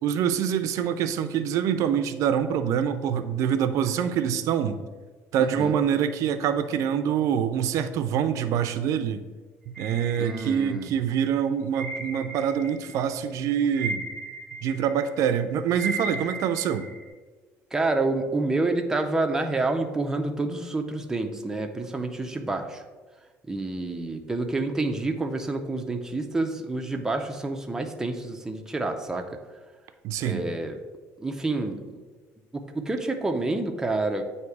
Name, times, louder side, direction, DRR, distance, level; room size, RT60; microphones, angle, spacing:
voice 1, 0.0-4.8 5.3-9.2 9.8-14.0 14.6-16.9 30.0-30.5, right 8 dB, 65° right, 10 dB, 0.5 m, -25 dB
voice 2, 5.4-5.7 10.2-10.9 17.7-22.8 23.5-29.4 30.2-30.8 31.2-32.0 32.5-34.2, right 2 dB, 10° right, 4 dB, 0.5 m, -28 dB
sound 1, 9.7-11.0 11.7-13.1 13.3-17.1, right 3 dB, 10° left, 1.8 m, -36 dB
8.3 x 2.8 x 4.6 m, 1.3 s
cardioid pair, 140°, 6 cm